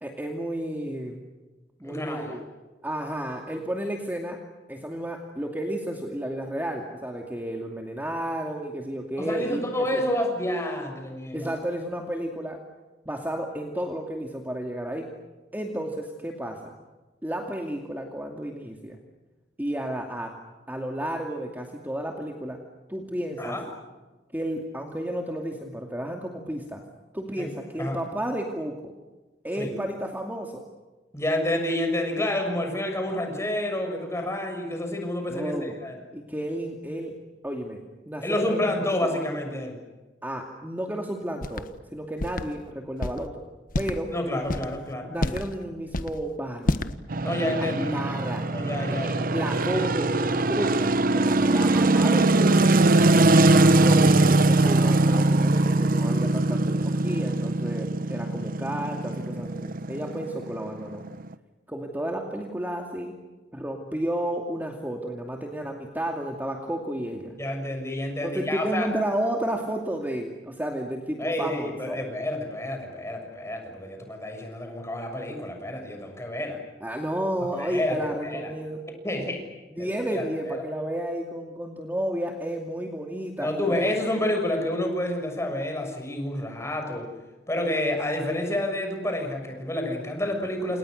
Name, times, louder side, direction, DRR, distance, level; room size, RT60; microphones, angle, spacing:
voice 1, 0.0-1.2 1.8-2.4 2.8-4.4 4.7-10.0 11.3-12.6 13.1-15.1 15.5-16.7 17.2-19.0 19.6-20.3 20.7-22.6 22.9-23.6 24.3-26.8 27.1-28.9 29.4-30.6 35.3-35.8 36.1-37.2 37.4-38.8 40.2-43.4 43.7-44.1 45.1-46.9 47.5-48.5 48.9-52.8 53.5-61.1 61.7-63.1 63.5-67.3 68.2-72.0 76.8-78.8 79.8-83.8 84.2-84.3, right 1 dB, 10° right, 1 dB, 2.5 m, -32 dB
voice 2, 1.8-2.4 9.2-11.5 23.4-23.6 27.4-27.5 27.8-28.0 29.6-29.7 31.1-36.0 38.2-39.8 44.1-45.3 47.2-48.0 48.5-49.4 67.4-68.9 71.2-76.6 77.6-78.5 79.0-79.4 79.8-80.6 83.4-87.1 87.5-90.8, left 1 dB, 15° left, 3 dB, 6.8 m, -29 dB
sound 1, 41.4-41.7 42.2-42.4 43.0-43.2 43.7-44.0 44.4-44.7 45.2-45.5 45.9-46.2 46.7-46.9, left 1 dB, 50° left, 1.3 m, -28 dB
sound 2, 47.1-61.3, right 2 dB, 55° right, 1.0 m, -21 dB
29.5 x 28.5 x 6.6 m, 1.2 s
head